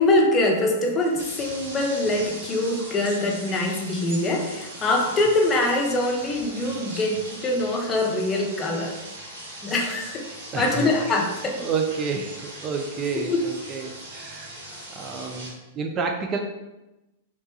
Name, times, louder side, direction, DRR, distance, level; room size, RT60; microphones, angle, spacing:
voice 1, 0.0-9.0 9.6-10.2 10.6-11.6 13.3-13.4, left 2 dB, 25° left, 1 dB, 0.7 m, -23 dB
sound 1, 1.0-15.5, right 1 dB, 70° right, 1.4 m, -40 dB
voice 2, 10.5-10.9 11.6-14.6 14.9-16.4, right 5 dB, 30° right, 4 dB, 0.4 m, -29 dB
3.3 x 2.9 x 2.7 m, 0.99 s
hypercardioid pair, 105°, 0 cm